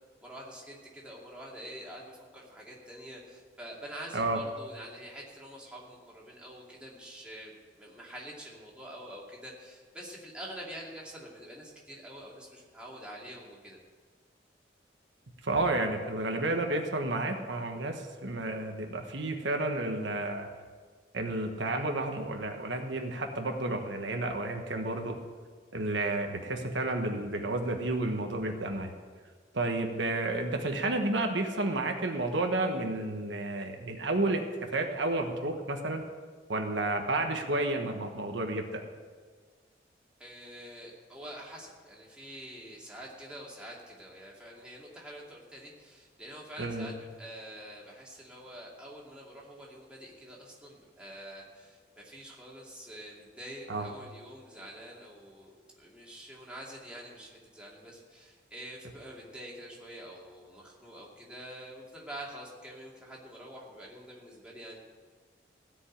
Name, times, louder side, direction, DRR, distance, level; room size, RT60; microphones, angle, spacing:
voice 1, 0.2-13.8 40.2-64.8, right 1 dB, 5° right, -4 dB, 2.5 m, -46 dB
voice 2, 15.4-20.5 21.1-25.2 25.7-28.9 29.5-36.0 36.5-38.9 46.6-46.9 53.7-53.9, right 2 dB, 85° right, 4 dB, 1.3 m, -31 dB
16.5 x 5.5 x 10.0 m, 1.5 s
head